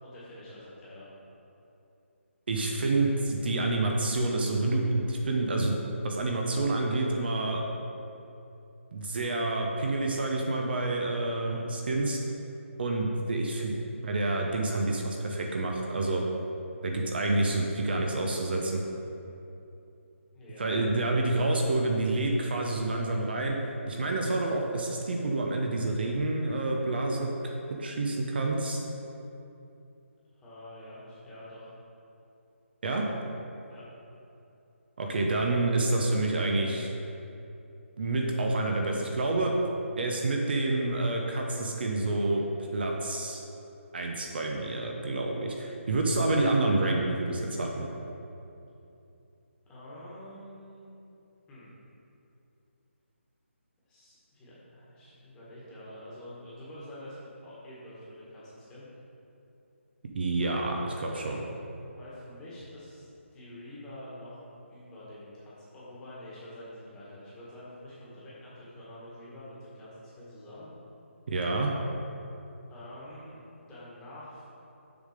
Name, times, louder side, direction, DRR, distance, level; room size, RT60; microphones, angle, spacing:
voice 1, 0.0-1.1 11.3-11.6 20.3-21.3 30.3-31.7 33.7-33.8 49.7-50.9 51.5-51.7 53.9-58.8 61.8-64.4 64.7-70.7 72.7-74.5, left 1 dB, 10° left, -9 dB, 1.6 m, -47 dB
voice 2, 2.5-5.8 6.0-7.6 8.9-12.2 12.8-13.7 14.0-16.2 16.8-18.8 20.6-23.6 23.9-27.5 27.8-28.8 32.8-33.1 35.0-36.9 38.0-39.5 40.0-42.4 42.7-43.4 43.9-47.9 60.1-61.5 71.3-71.7, right 2 dB, 50° right, 1 dB, 0.9 m, -28 dB
7.0 x 5.6 x 5.0 m, 2.8 s
hypercardioid pair, 165°, 7 cm